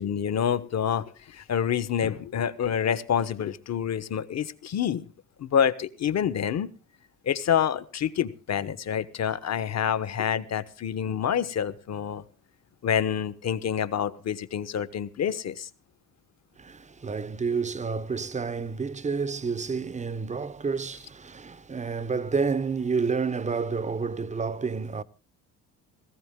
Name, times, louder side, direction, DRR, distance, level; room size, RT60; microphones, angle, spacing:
voice 1, 0.0-5.0 5.4-6.7 7.2-12.2 12.8-15.7, left 8 dB, 45° left, 1.2 m, -27 dB
voice 2, 16.6-25.0, right 5 dB, 20° right, 0.8 m, -29 dB
17.5 x 15.0 x 3.7 m
supercardioid pair, 75°, 37 cm